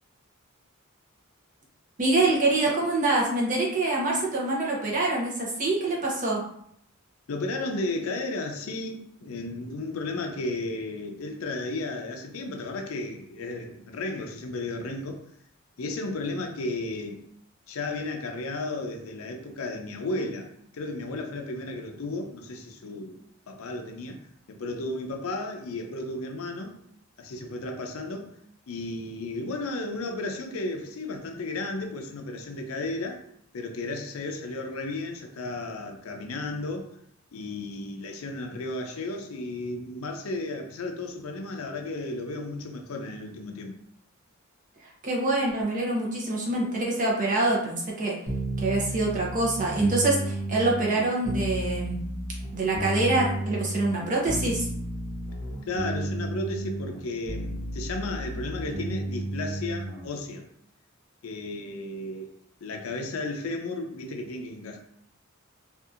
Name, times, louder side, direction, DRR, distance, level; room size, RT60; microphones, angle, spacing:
voice 1, 2.0-6.4 45.0-48.2 48.6-52.0 52.5-54.7, right 2 dB, 40° right, -2 dB, 0.7 m, -25 dB
voice 2, 7.3-15.2 15.8-17.2 17.7-20.5 20.7-24.2 24.5-26.8 27.2-28.3 28.7-33.2 33.5-36.9 37.3-43.8 55.7-60.4 61.2-62.3 62.6-64.8, left 2 dB, 85° left, 3 dB, 0.5 m, -34 dB
sound 1, 48.3-60.1, right 1 dB, 70° right, 0.8 m, -33 dB
2.7 x 2.4 x 2.4 m, 0.68 s
head